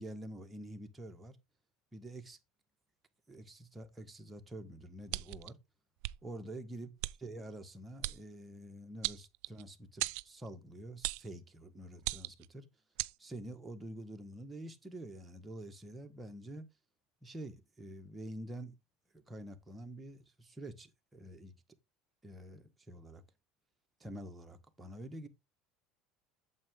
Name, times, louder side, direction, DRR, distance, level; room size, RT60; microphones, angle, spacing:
voice 1, 0.0-1.4 1.9-2.4 3.3-5.6 6.2-6.9 7.2-12.7 13.2-16.7 17.2-18.8 19.1-21.5 22.2-23.2 24.0-25.3, right 1 dB, 15° right, 1.6 m, -47 dB
sound 1, 5.1-5.5 6.0-6.2 7.0-7.1 8.0-8.2 9.0-9.6 10.0-10.3 11.0-11.3 12.0-12.5 13.0-13.1, right 22 dB, 70° right, 0.4 m, -37 dB
8.7 x 7.1 x 3.8 m
supercardioid pair, 115°, 0 cm